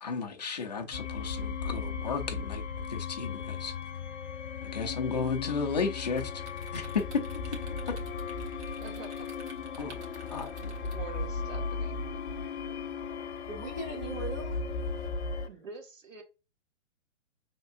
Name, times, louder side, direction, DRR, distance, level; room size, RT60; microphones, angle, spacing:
voice 1, 0.0-2.6 2.9-3.7 4.6-6.4 6.7-7.2 7.5-7.6 7.9-8.0 9.8-10.0 10.3-10.7, left 5 dB, 35° left, 0.5 m, -33 dB
sound 1, 0.9-15.5, left 5 dB, 60° left, 0.8 m, -36 dB
sound 2, 5.8-12.4, right 2 dB, 65° right, 1.6 m, -52 dB
voice 2, 8.8-9.5 10.9-12.0 15.5-16.2, right 4 dB, 80° right, 1.9 m, -46 dB
voice 3, 12.6-12.9 13.2-14.6 15.0-15.4, right 2 dB, 15° right, 0.7 m, -41 dB
5.7 x 3.5 x 2.6 m
hypercardioid pair, 175°, 38 cm